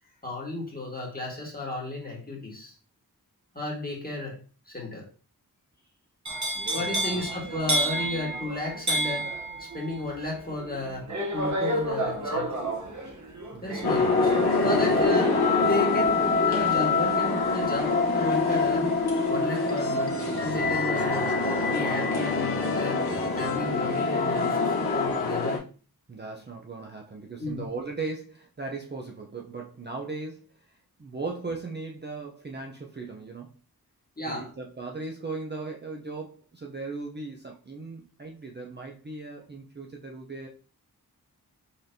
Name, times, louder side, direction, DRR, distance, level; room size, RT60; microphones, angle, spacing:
voice 1, 0.2-2.7 3.5-4.4 4.7-5.0 6.7-9.3 9.6-12.6 13.6-14.3 14.6-15.3 15.6-18.9 19.3-21.3 21.6-23.0 23.3-25.6 27.4-27.7 34.2-34.5, left 2 dB, 25° left, -2 dB, 1.6 m, -33 dB
sound 1, 6.2-18.2 18.5-19.0, right 1 dB, 50° right, 1.1 m, -31 dB
voice 2, 6.8-7.2 13.5-13.9 14.6-15.1 26.1-33.5 34.3-40.5, right 3 dB, 30° right, 0 dB, 0.6 m, -38 dB
sound 2, 13.8-25.6, left 3 dB, 80° left, 1.3 m, -25 dB
sound 3, 19.2-24.6, left 6 dB, 40° left, 0.4 m, -39 dB
4.1 x 3.2 x 2.7 m, 0.38 s
wide cardioid pair, 55°, 37 cm